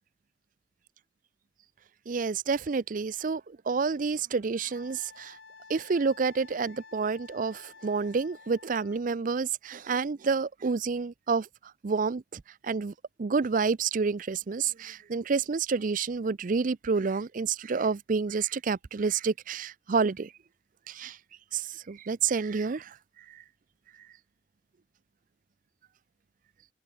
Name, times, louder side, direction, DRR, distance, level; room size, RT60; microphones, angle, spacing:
voice 1, 2.1-5.4 5.7-11.5 11.8-12.9 13.2-20.3 20.9-21.2 21.5-23.0 23.3-23.4, right 5 dB, 45° right, 0.5 m, -29 dB
Wind instrument woodwind instrument, 4.7-9.0, left 4 dB, 80° left, 3.5 m, -52 dB
head